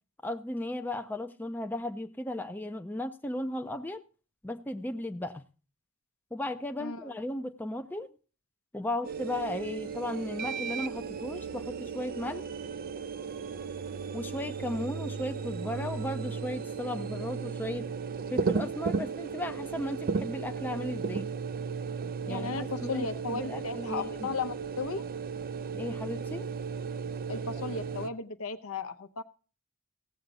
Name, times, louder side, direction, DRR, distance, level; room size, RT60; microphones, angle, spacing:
voice 1, 0.2-4.0 4.4-5.4 6.3-8.1 8.7-12.5 14.1-17.9 18.3-21.3 22.3-24.3 25.7-26.5, left 1 dB, 10° left, 6 dB, 0.5 m, -36 dB
voice 2, 6.8-7.1 22.3-25.0 27.3-29.2, left 4 dB, 70° left, 10 dB, 0.8 m, -35 dB
sound 1, 9.0-28.1, right 5 dB, 40° right, 0.4 m, -35 dB
16.5 x 7.9 x 4.0 m, 0.36 s
head